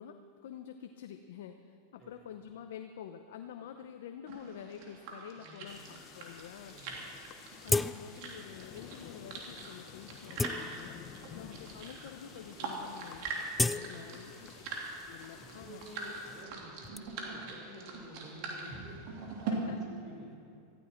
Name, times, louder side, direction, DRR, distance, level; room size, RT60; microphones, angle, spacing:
voice 1, 0.0-6.8 7.6-11.0 11.3-13.3 13.6-14.6 15.1-15.8 19.5-19.8, left 9 dB, 75° left, 6 dB, 0.7 m, -48 dB
sound 1, 4.3-19.5, right 4 dB, 60° right, 2.9 m, -44 dB
voice 2, 5.4-5.8 6.7-7.1 13.8-14.5 15.3-19.1 19.4-20.4, right 1 dB, 35° right, -2 dB, 4.7 m, -50 dB
sound 2, 5.7-16.4, left 8 dB, 40° left, 1.0 m, -52 dB
sound 3, 6.6-6.7 6.9-7.0 7.6-8.4 8.8-8.9 9.5-9.7 10.1-11.2 11.9-12.0 12.3-12.6 12.9-14.7 15.1-17.0, left 3 dB, 10° left, 0.3 m, -35 dB
17.5 x 14.5 x 4.5 m, 2.3 s
supercardioid pair, 130°, 0 cm